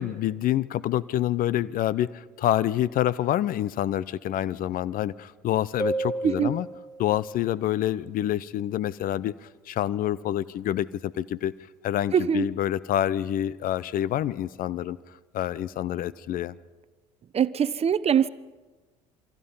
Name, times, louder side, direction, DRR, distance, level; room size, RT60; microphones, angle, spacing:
voice 1, 0.0-6.7 7.0-11.5 11.8-15.0 15.3-16.6, left 12 dB, 50° left, 0.8 m, -27 dB
sound 1, 5.8-7.3, right 2 dB, 20° left, 2.5 m, -31 dB
voice 2, 12.1-12.4 17.3-18.3, right 8 dB, 35° right, 0.9 m, -22 dB
28.5 x 24.0 x 5.5 m
hypercardioid pair, 60°, 18 cm